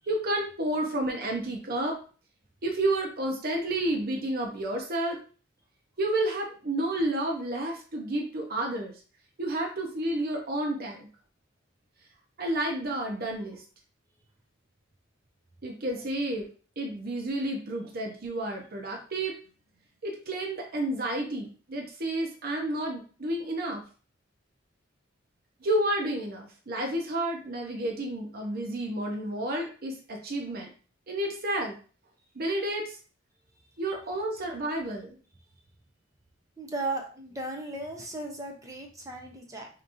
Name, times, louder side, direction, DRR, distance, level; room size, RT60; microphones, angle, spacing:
voice 1, 0.1-2.0 2.6-5.2 6.0-9.0 9.4-11.1 12.4-13.6 15.6-16.4 16.8-19.4 20.0-23.8 25.6-30.7 31.1-31.8 32.3-33.0 33.8-35.2, right 1 dB, 50° right, 1 dB, 0.8 m, -30 dB
voice 2, 36.6-39.7, right 2 dB, 15° right, 1 dB, 0.7 m, -36 dB
5.1 x 2.9 x 2.6 m, 0.38 s
head